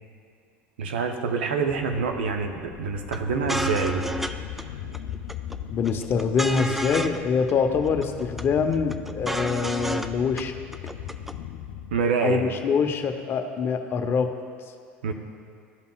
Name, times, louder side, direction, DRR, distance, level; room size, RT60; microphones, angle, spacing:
voice 1, 0.8-4.1 11.9-12.5 15.0-15.1, right 5 dB, 85° right, 5 dB, 0.6 m, -26 dB
sound 1, 1.7-12.1, left 10 dB, 75° left, 0.4 m, -38 dB
sound 2, 3.1-3.2 3.5-4.3 4.6-4.7 4.9-5.6 5.9-7.2 7.5-7.6 7.8-8.4 8.7-10.1 10.4-10.5 10.7-11.3, right 1 dB, 5° right, 0.3 m, -30 dB
voice 2, 5.7-10.5 12.2-14.3, left 6 dB, 40° left, 6 dB, 0.7 m, -24 dB
13.0 x 5.4 x 2.3 m, 2.4 s
hypercardioid pair, 85°, 6 cm